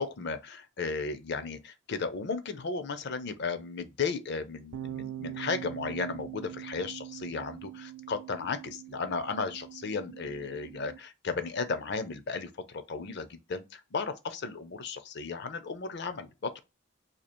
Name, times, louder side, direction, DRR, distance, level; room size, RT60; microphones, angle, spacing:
voice 1, 0.0-16.6, left 4 dB, 55° left, 0.5 m, -35 dB
sound 1, 4.7-11.0, right 12 dB, 85° right, 0.4 m, -43 dB
2.8 x 2.7 x 4.3 m
head